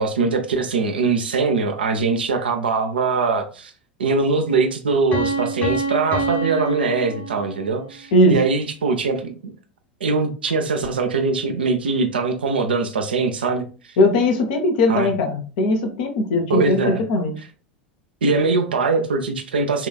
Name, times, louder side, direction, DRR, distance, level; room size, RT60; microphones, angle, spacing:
voice 1, 0.0-3.7 4.0-9.5 10.0-13.9 14.9-15.1 16.5-17.0 18.2-19.9, right 4 dB, 75° right, 5 dB, 0.5 m, -22 dB
Piano, 5.1-7.9, right 2 dB, 40° left, 1.3 m, -26 dB
voice 2, 14.0-16.8 17.1-17.3, left 1 dB, 60° left, 5 dB, 0.7 m, -19 dB
5.5 x 2.3 x 2.2 m, 0.37 s
figure-of-eight pair, 80°, 5 cm